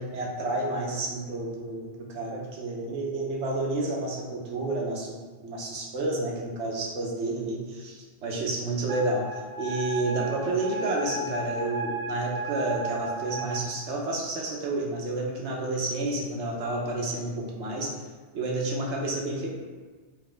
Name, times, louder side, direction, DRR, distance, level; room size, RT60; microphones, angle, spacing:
voice 1, 0.0-5.2 5.4-8.0 8.2-9.3 9.6-17.9 18.3-19.5, right 2 dB, 85° right, -1 dB, 1.1 m, -30 dB
Wind instrument woodwind instrument, 8.9-13.6, right 2 dB, 45° right, 1.2 m, -34 dB
4.6 x 2.8 x 3.4 m, 1.4 s
omnidirectional pair, 1.1 m